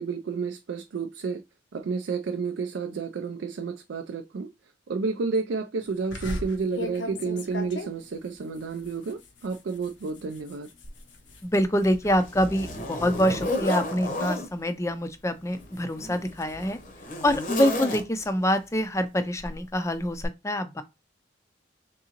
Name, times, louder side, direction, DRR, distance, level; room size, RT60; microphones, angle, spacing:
voice 1, 0.0-1.4 1.7-4.5 4.9-10.7, right 4 dB, 75° right, 0.4 m, -31 dB
sound 1, 6.1-11.5 11.9-12.3 12.6-14.7 15.2-17.4, left 2 dB, 75° left, 0.8 m, -40 dB
Zipper (clothing), 10.8-11.0 11.5-14.5 15.4-18.4 19.4-19.6 20.2-20.3, left 1 dB, 45° left, 0.8 m, -32 dB
voice 2, 11.4-16.8 17.2-20.8, equal, 15° left, 0.4 m, -26 dB
3.7 x 3.6 x 2.9 m
head